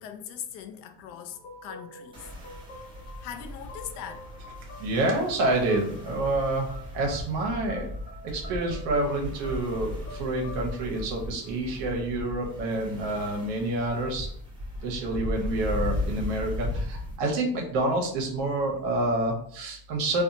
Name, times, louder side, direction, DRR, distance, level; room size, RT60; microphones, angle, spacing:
voice 1, 0.0-2.3 2.9-4.3 9.9-10.0, left 9 dB, 85° left, 0.6 m, -41 dB
sound 1, 1.3-12.0, left 2 dB, 25° left, 0.6 m, -48 dB
sound 2, 2.1-17.2, left 1 dB, 10° right, 0.8 m, -36 dB
voice 2, 4.8-7.9 8.2-14.3 14.8-20.2, right 2 dB, 55° right, 0.8 m, -28 dB
2.7 x 2.2 x 2.6 m
supercardioid pair, 135°, 50 cm